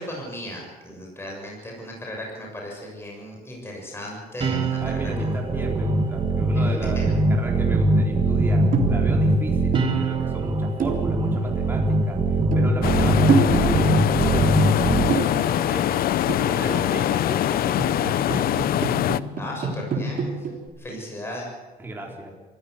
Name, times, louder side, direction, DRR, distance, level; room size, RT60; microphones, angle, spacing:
voice 1, 0.0-5.4 6.9-7.1 19.4-20.4 20.8-21.5, left 1 dB, 15° left, -1 dB, 6.9 m, -36 dB
sound 1, 4.4-15.1, right 2 dB, 30° right, 2.5 m, -22 dB
voice 2, 4.8-16.0 16.4-18.6 21.8-22.3, right 2 dB, 10° right, -2 dB, 4.2 m, -35 dB
sound 2, 8.6-9.2 9.5-10.4 10.8-11.5 12.1-12.2 12.4-13.0 13.3-14.0 15.0-15.9 16.3-16.8 17.5-20.7, right 4 dB, 55° right, 3.6 m, -27 dB
sound 3, 12.8-19.2, left 12 dB, 60° left, 0.7 m, -23 dB
23.5 x 15.0 x 8.2 m, 1.2 s
cardioid pair, 110°, 17 cm